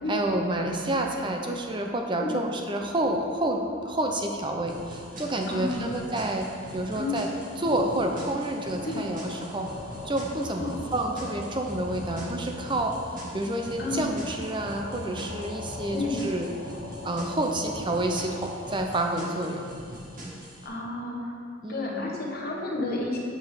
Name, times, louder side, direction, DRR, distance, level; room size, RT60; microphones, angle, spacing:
voice 1, 0.1-6.5 6.7-7.3 7.6-9.7 10.0-12.9 13.3-16.5 17.0-19.7 21.6-22.1, right 1 dB, 25° right, 2 dB, 0.6 m, -29 dB
sound 1, 3.3-18.8, left 2 dB, 90° left, 0.9 m, -42 dB
sound 2, 4.7-20.7, right 1 dB, 40° right, 1.6 m, -42 dB
voice 2, 5.5-5.9 6.9-7.2 8.8-9.0 10.6-10.8 13.8-14.1 15.9-16.2 20.6-21.3 21.7-23.2, left 2 dB, 50° left, -3 dB, 1.4 m, -31 dB
8.1 x 5.1 x 5.0 m, 2.2 s
head